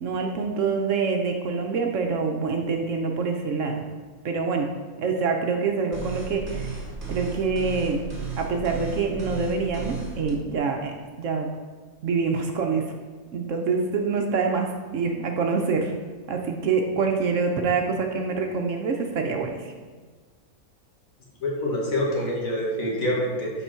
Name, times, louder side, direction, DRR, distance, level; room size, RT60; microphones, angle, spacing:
voice 1, 0.0-3.9 4.2-4.7 5.0-6.8 7.1-8.0 8.4-10.9 11.2-11.5 12.0-12.9 13.3-15.9 16.3-19.7, right 4 dB, 65° right, 3 dB, 1.0 m, -26 dB
sound 1, 5.9-10.3, right 5 dB, 35° right, 1.4 m, -34 dB
voice 2, 21.4-23.5, left 1 dB, 65° left, -3 dB, 1.8 m, -26 dB
6.9 x 4.5 x 4.4 m, 1.4 s
omnidirectional pair, 1.5 m